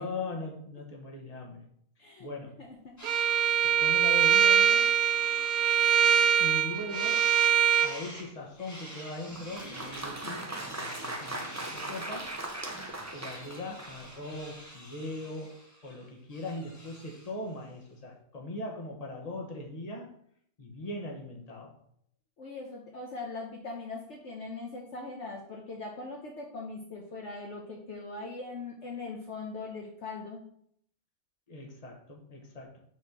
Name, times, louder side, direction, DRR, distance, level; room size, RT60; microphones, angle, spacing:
voice 1, 0.0-1.7 2.2-2.6 3.6-4.9 6.4-7.3 7.8-12.4 13.1-15.6 15.8-20.1 20.6-21.7 31.5-32.8, left 2 dB, 25° left, 0 dB, 1.4 m, -40 dB
voice 2, 2.6-3.0 22.4-30.4, left 3 dB, 55° left, -1 dB, 1.2 m, -40 dB
sound 1, 3.0-3.5 4.0-6.6 6.9-17.4, equal, 10° left, 1.6 m, -47 dB
Bowed string instrument, 3.0-7.9, right 8 dB, 75° right, 1.1 m, -23 dB
Applause, 9.3-14.2, right 1 dB, 15° right, 0.6 m, -39 dB
6.3 x 4.3 x 6.0 m, 0.67 s
omnidirectional pair, 1.5 m